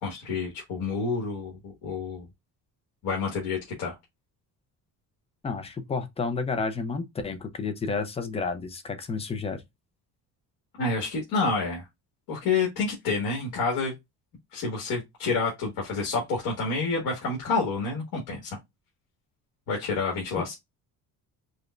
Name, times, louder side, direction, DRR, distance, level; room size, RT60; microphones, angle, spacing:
voice 1, 0.0-2.3 3.0-3.9 10.8-11.9 12.3-13.9 14.5-18.6 19.7-20.5, left 4 dB, 60° left, 1.6 m, -28 dB
voice 2, 5.4-9.6, left 4 dB, 15° left, 0.4 m, -31 dB
4.9 x 2.2 x 2.4 m
cardioid pair, 180°, 37 cm